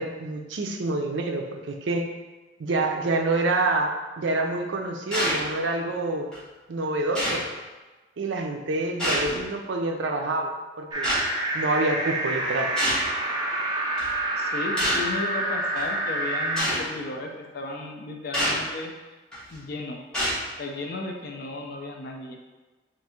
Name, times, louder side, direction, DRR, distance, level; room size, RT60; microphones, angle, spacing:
voice 1, 0.0-2.1 2.6-6.3 6.7-7.4 8.2-11.1 11.5-12.7, right 2 dB, 65° right, 3 dB, 0.5 m, -27 dB
sound 1, 5.1-5.5 6.3-6.4 7.1-7.5 9.0-9.4 11.0-11.3 12.8-13.1 14.0-14.1 14.8-15.1 15.8-15.9 16.6-16.8 18.3-18.6 19.3-19.6 20.1-20.4, equal, 5° left, 1.3 m, -26 dB
sound 2, 10.9-16.6, right 1 dB, 20° right, 0.6 m, -28 dB
voice 2, 14.4-18.9 19.5-20.0 20.6-22.4, left 2 dB, 50° left, 2 dB, 0.4 m, -34 dB
3.5 x 2.5 x 4.2 m, 1.2 s
head